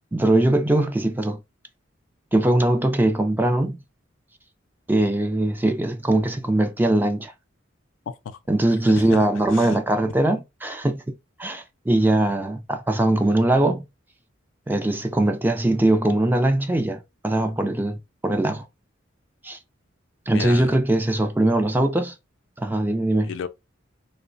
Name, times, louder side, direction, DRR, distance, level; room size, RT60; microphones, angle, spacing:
voice 1, 0.1-1.4 2.3-3.8 4.9-7.3 8.5-13.9 14.7-18.7 19.4-19.6 20.3-22.2 22.6-23.3, right 1 dB, 10° right, 0.3 m, -21 dB
voice 2, 8.1-8.4 9.0-9.2 9.5-9.8 20.3-20.8 23.2-23.5, left 6 dB, 75° left, 0.3 m, -32 dB
3.0 x 2.1 x 2.5 m
head